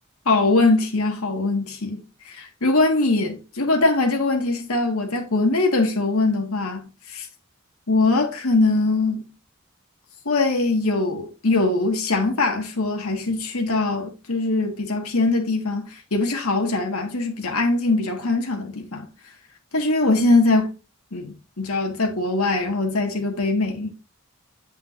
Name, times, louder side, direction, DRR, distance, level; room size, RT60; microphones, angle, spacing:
voice 1, 0.2-7.3 7.9-9.3 10.2-19.1 19.7-20.7 21.1-23.9, left 2 dB, 85° left, 1.5 m, -22 dB
8.3 x 5.8 x 2.5 m
head